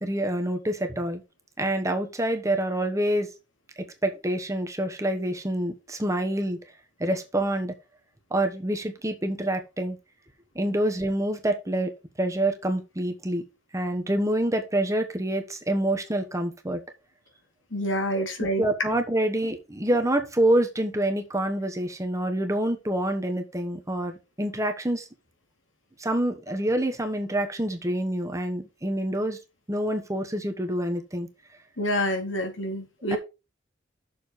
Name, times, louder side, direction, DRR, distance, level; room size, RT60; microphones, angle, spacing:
voice 1, 0.0-1.2 1.6-3.3 3.8-6.6 7.0-7.7 8.3-10.0 10.5-11.9 12.2-13.4 13.7-16.8 18.1-18.2 18.6-24.1 24.4-25.1 26.0-29.4 29.7-31.3 33.1-33.2, right 1 dB, 15° right, 1.2 m, -27 dB
voice 2, 17.7-18.6 31.8-33.2, equal, 90° left, 2.3 m, -27 dB
6.8 x 6.4 x 4.2 m
head